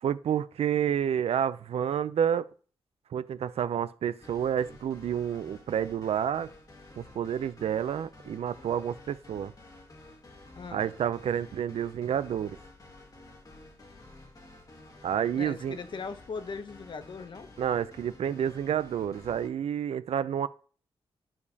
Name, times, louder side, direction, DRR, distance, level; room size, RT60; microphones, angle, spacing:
voice 1, 0.0-2.5 3.1-6.5 7.0-9.5 10.7-12.6 15.0-15.8 17.6-20.5, right 9 dB, 80° right, 0.4 m, -29 dB
sound 1, 4.2-19.5, left 2 dB, 35° left, 1.3 m, -51 dB
voice 2, 10.6-10.9 15.3-17.5, left 5 dB, 50° left, 0.7 m, -39 dB
10.5 x 5.0 x 2.8 m
wide cardioid pair, 105°, 10 cm